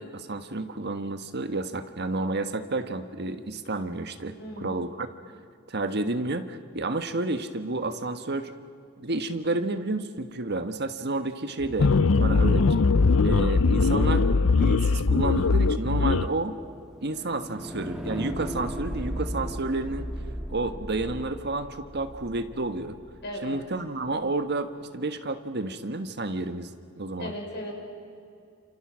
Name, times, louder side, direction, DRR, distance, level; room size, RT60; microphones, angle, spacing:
voice 1, 0.0-4.3 4.6-5.1 5.7-8.5 9.0-12.8 13.2-16.5 17.0-20.1 20.5-23.0 23.4-26.7 27.0-27.3, right 2 dB, 55° right, 8 dB, 1.5 m, -30 dB
voice 2, 4.4-4.9 23.2-23.6 27.2-27.7, left 1 dB, 55° left, 1 dB, 6.2 m, -36 dB
sound 1, 11.8-16.3, left 4 dB, 70° left, 0.6 m, -21 dB
sound 2, 15.6-23.6, equal, 5° right, 2.2 m, -38 dB
28.5 x 28.0 x 6.3 m, 2.5 s
head